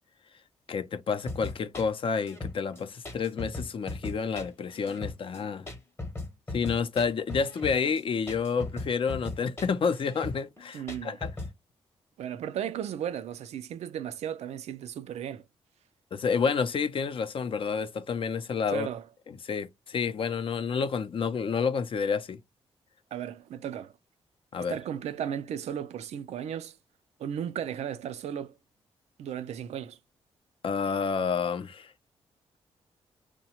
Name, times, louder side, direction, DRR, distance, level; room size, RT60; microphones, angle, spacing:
voice 1, 0.7-5.7 6.5-11.3 16.1-18.9 19.4-22.4 24.5-24.8 30.6-31.9, left 5 dB, 55° left, 0.5 m, -29 dB
sound 1, 1.3-11.5, left 2 dB, 25° left, 0.9 m, -38 dB
voice 2, 10.7-11.2 12.2-15.4 18.7-19.1 23.1-23.9 24.6-26.8 27.2-28.6 29.2-30.0, right 9 dB, 80° right, 0.4 m, -35 dB
2.8 x 2.1 x 2.8 m
cardioid pair, 80°, 11 cm